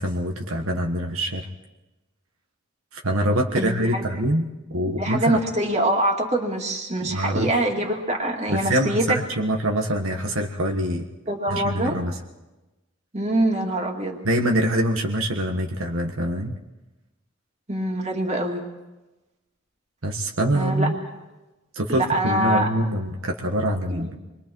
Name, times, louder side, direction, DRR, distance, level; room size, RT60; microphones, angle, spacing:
voice 1, 0.0-1.4 2.9-4.5 4.7-5.4 7.0-7.6 8.5-11.0 11.5-12.2 14.2-16.6 20.0-20.9 21.7-24.2, right 1 dB, 75° right, 2 dB, 1.5 m, -24 dB
voice 2, 3.6-4.1 4.8-9.2 11.3-11.9 13.1-14.2 17.7-18.6 20.5-20.9 21.9-22.7 23.9-24.1, right 1 dB, 30° right, 1 dB, 2.6 m, -24 dB
28.0 x 22.5 x 4.6 m, 1.1 s
head